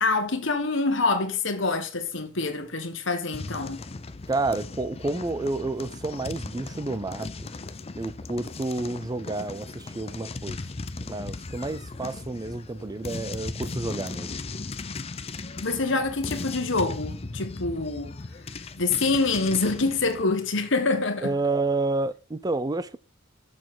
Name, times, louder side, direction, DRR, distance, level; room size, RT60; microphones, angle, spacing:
voice 1, 0.0-3.8 15.6-18.2 18.8-21.3, left 3 dB, 65° left, 1.4 m, -26 dB
sound 1, 3.3-20.2, left 3 dB, 30° left, 0.5 m, -37 dB
voice 2, 4.3-7.5 8.0-10.6 11.1-14.3 21.2-23.0, right 2 dB, 20° right, 0.5 m, -30 dB
7.0 x 6.4 x 3.8 m
head